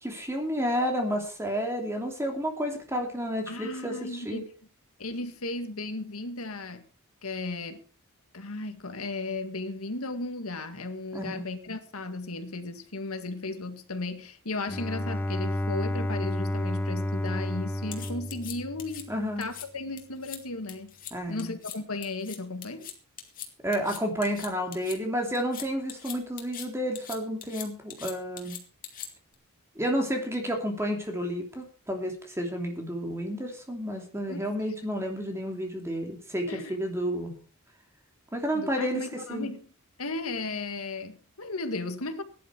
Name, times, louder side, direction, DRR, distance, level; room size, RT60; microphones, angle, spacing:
voice 1, 0.0-4.4 11.1-11.4 19.1-19.5 21.1-21.5 23.6-28.6 29.7-37.3 38.3-39.5, equal, 10° right, 2.8 m, -31 dB
voice 2, 3.5-4.5 5.0-6.8 7.2-7.8 8.3-19.1 19.4-20.9 21.3-22.9 34.3-34.5 36.5-36.7 38.5-39.7 40.0-42.2, left 2 dB, 90° left, 2.0 m, -35 dB
Bowed string instrument, 14.7-19.3, left 1 dB, 10° left, 0.6 m, -31 dB
sound 1, 17.9-19.0 19.4-19.7 20.0-20.4 20.7-21.1 21.4-21.8 22.0-25.0 25.3-26.7 27.0-29.3, left 10 dB, 40° left, 2.6 m, -41 dB
16.5 x 11.0 x 4.6 m
head